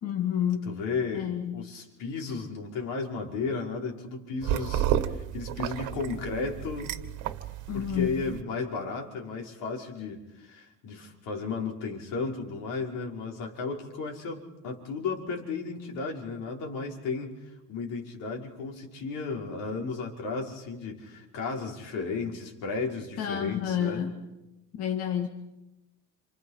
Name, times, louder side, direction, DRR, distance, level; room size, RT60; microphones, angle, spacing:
voice 1, 0.0-0.8 1.1-1.7 7.7-8.2 23.2-24.2 24.8-25.3, left 9 dB, 45° left, 3 dB, 2.2 m, -29 dB
voice 2, 0.6-6.9 7.7-17.3 17.7-24.0, left 4 dB, 70° left, 0 dB, 5.4 m, -34 dB
sound 1, 4.4-8.4, right 11 dB, 65° right, 1.8 m, -32 dB
29.5 x 28.0 x 5.8 m, 0.98 s
cardioid pair, 145°, 32 cm